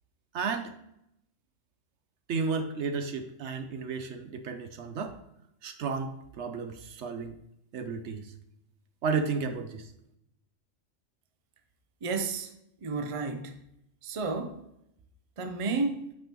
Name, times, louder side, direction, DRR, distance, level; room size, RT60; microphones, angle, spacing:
voice 1, 0.3-0.7 2.3-5.2 5.6-7.3 7.7-8.3 9.0-9.9, right 5 dB, 65° right, 8 dB, 0.9 m, -33 dB
voice 2, 12.0-12.5 12.8-13.6 14.0-14.6 15.4-16.1, right 3 dB, 40° right, 7 dB, 0.5 m, -31 dB
8.6 x 5.5 x 3.0 m, 0.79 s
omnidirectional pair, 1.4 m